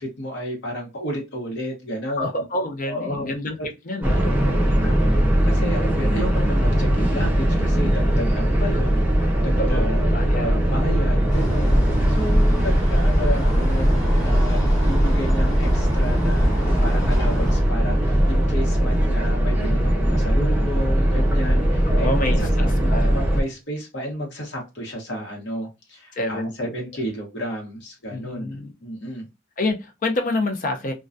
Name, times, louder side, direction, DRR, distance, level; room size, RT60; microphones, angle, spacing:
voice 1, 0.0-2.5 2.9-3.3 3.6-3.7 4.8-5.0 5.4-9.0 9.4-29.3, equal, 70° left, 0.9 m, -32 dB
voice 2, 2.2-3.6 3.9-4.3 4.6-4.9 9.6-10.5 21.9-23.2 26.1-26.8 28.1-28.7 29.6-30.9, left 2 dB, 45° left, 0.5 m, -28 dB
sound 1, 4.0-23.4, equal, 10° right, 0.6 m, -20 dB
sound 2, 11.3-17.6, equal, 20° left, 1.0 m, -25 dB
2.2 x 2.2 x 2.5 m
head